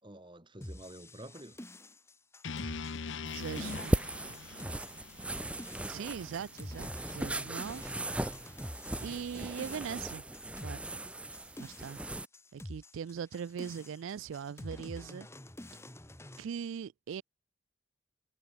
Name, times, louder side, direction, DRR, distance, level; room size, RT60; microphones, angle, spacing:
voice 1, 0.0-1.7 3.6-3.9 4.2-4.6, right 1 dB, 25° right, 2.7 m, -50 dB
sound 1, 0.6-16.4, left 1 dB, 15° left, 1.7 m, -48 dB
sound 2, 2.4-6.6, left 5 dB, 70° left, 0.7 m, -42 dB
voice 2, 3.2-3.9 5.9-8.3 9.0-10.3 10.6-10.8 11.6-12.0 12.5-15.3 16.4-17.2, right 7 dB, 80° right, 0.4 m, -40 dB
sound 3, 3.3-12.3, right 1 dB, 5° right, 0.5 m, -38 dB
head